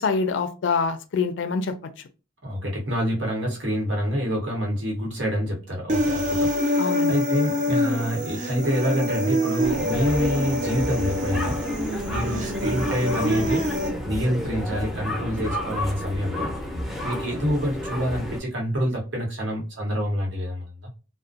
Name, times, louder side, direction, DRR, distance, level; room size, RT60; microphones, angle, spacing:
voice 1, 0.0-1.9 6.8-7.1, left 5 dB, 75° left, 0.4 m, -25 dB
voice 2, 2.4-11.6 12.1-13.7 14.1-16.5 17.0-20.6, equal, 75° right, 1.0 m, -27 dB
Human voice, 5.9-13.9, left 1 dB, 40° right, 0.5 m, -25 dB
sound 1, 9.6-18.4, left 1 dB, ahead, 0.6 m, -31 dB
2.4 x 2.1 x 2.5 m
head